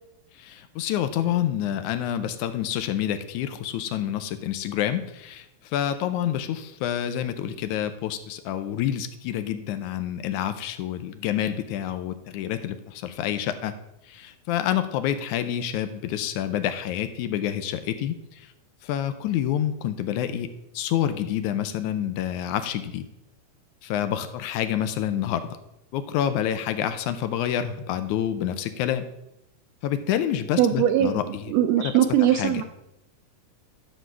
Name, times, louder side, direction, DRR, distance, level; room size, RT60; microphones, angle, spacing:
voice 1, 0.4-5.5 5.7-13.7 14.1-18.5 18.8-23.0 23.8-25.6 25.9-29.1 29.8-31.5 31.8-31.9 32.3-32.6, left 10 dB, 80° left, 10 dB, 2.0 m, -28 dB
voice 2, 30.6-31.1 31.5-32.6, right 11 dB, 85° right, 6 dB, 1.5 m, -20 dB
11.5 x 3.9 x 6.1 m, 0.85 s
omnidirectional pair, 3.5 m